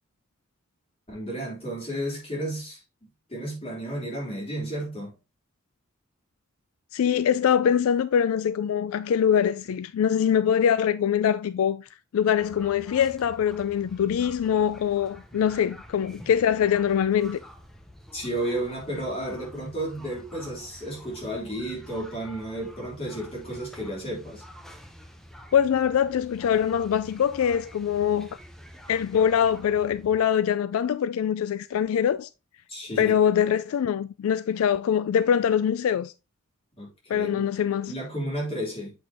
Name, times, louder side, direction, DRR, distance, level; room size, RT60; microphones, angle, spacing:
voice 1, 1.1-2.8 3.3-5.1 18.1-24.4 32.7-33.1 36.8-37.4 37.9-38.9, right 1 dB, 30° left, 3.1 m, -32 dB
voice 2, 6.9-17.4 25.5-28.3 28.9-32.3 33.0-36.1 37.1-37.9, left 8 dB, 85° left, 0.3 m, -23 dB
sound 1, 12.4-30.2, equal, ahead, 0.7 m, -48 dB
7.8 x 5.2 x 2.7 m
head